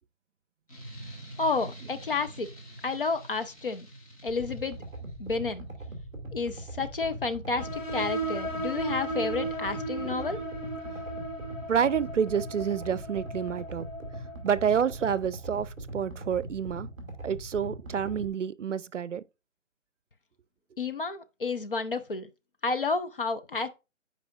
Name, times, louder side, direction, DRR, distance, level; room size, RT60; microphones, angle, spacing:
sound 1, 0.7-5.1, right 1 dB, 25° left, 1.3 m, -46 dB
voice 1, 1.4-2.5 2.8-3.9 4.2-4.8 5.2-5.6 6.3-10.4 20.8-22.3 22.6-23.7, left 4 dB, 45° left, 0.7 m, -30 dB
sound 2, 4.3-18.3, right 1 dB, ahead, 1.0 m, -41 dB
sound 3, 7.6-14.9, right 2 dB, 80° left, 2.1 m, -36 dB
voice 2, 11.7-13.9 14.4-16.9 17.2-19.2, right 7 dB, 65° right, 0.6 m, -28 dB
8.4 x 4.8 x 2.4 m
hypercardioid pair, 165°, 40 cm